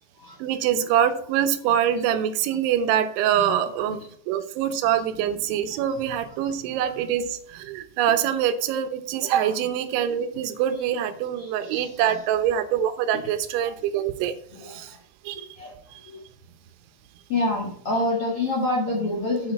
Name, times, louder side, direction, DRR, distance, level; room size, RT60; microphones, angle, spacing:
voice 1, 0.4-14.3 14.6-15.0 15.2-15.5 15.9-16.1, right 10 dB, 85° right, 10 dB, 3.3 m, -24 dB
voice 2, 5.5-5.8 6.4-6.6 6.8-7.0 9.2-9.5 10.7-10.8 11.4-12.2 14.5-15.0 15.6-15.7 16.1-16.2 17.3-19.5, left 2 dB, 50° left, -2 dB, 1.8 m, -28 dB
8.7 x 8.4 x 4.2 m, 0.62 s
omnidirectional pair, 5.2 m